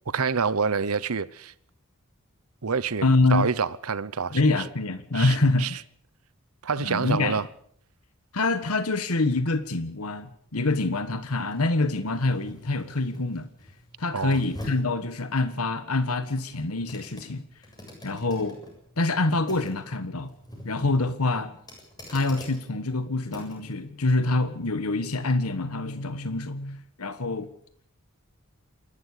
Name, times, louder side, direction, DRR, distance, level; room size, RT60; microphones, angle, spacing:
voice 1, 0.1-1.5 2.6-3.0 3.3-4.4 5.1-5.7 6.6-7.4 14.1-14.4, right 5 dB, 80° right, 0.9 m, -27 dB
voice 2, 3.0-3.5 4.3-5.8 6.8-7.4 8.3-13.5 14.0-17.4 18.0-18.6 19.0-20.3 20.6-21.6 22.1-27.5, left 2 dB, 85° left, 1.4 m, -26 dB
sound 1, 9.1-23.7 24.2-24.3, left 1 dB, 20° left, 7.5 m, -46 dB
27.5 x 12.5 x 8.3 m
head